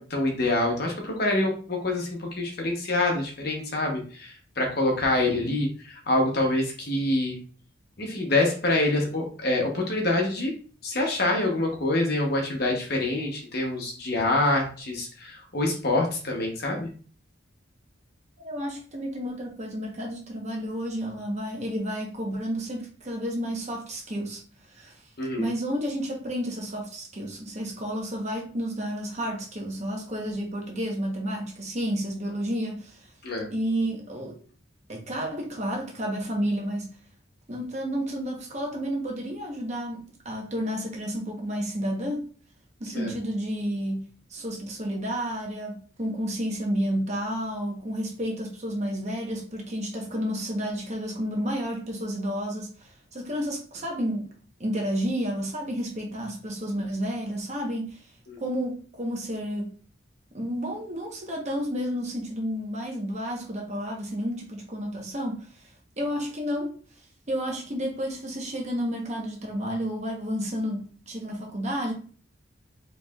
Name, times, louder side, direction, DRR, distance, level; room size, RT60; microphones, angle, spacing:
voice 1, 0.0-7.4 8.0-10.5 10.8-16.9 25.2-25.5 33.2-33.5 42.9-43.1 58.3-58.4, left 2 dB, 50° left, 1.0 m, -26 dB
voice 2, 18.4-24.4 24.7-25.0 25.4-33.1 33.5-34.4 34.9-36.9 37.5-42.3 42.8-54.3 54.6-58.0 58.4-59.7 60.3-65.7 66.0-66.7 67.3-71.9, equal, 35° right, 1.0 m, -31 dB
4.7 x 3.2 x 2.4 m
head